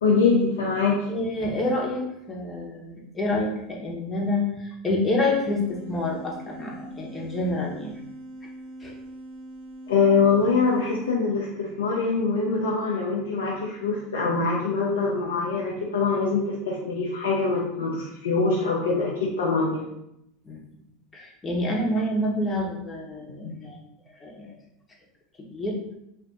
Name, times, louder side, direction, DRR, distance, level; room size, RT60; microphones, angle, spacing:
voice 1, 0.0-1.1 9.9-19.9, left 4 dB, 85° left, -3 dB, 0.5 m, -24 dB
voice 2, 1.1-8.0 8.8-8.9 20.4-20.7 21.1-23.8 24.1-24.6 25.4-25.8, left 1 dB, 25° left, -1 dB, 0.9 m, -28 dB
sound 1, 5.3-11.2, right 1 dB, 70° right, 1.2 m, -42 dB
2.5 x 2.5 x 3.4 m, 0.81 s
hypercardioid pair, 90°, 0 cm